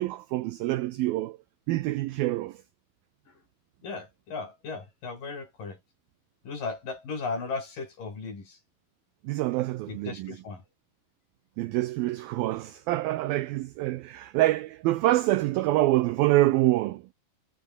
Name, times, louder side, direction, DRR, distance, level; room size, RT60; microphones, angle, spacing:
voice 1, 0.0-1.4 1.7-2.6 9.2-10.4 11.6-17.1, right 17 dB, 85° right, 2.1 m, -26 dB
voice 2, 3.8-5.8 6.4-8.6 9.9-10.6, left 4 dB, 50° left, 7.8 m, -36 dB
omnidirectional pair, 5.2 m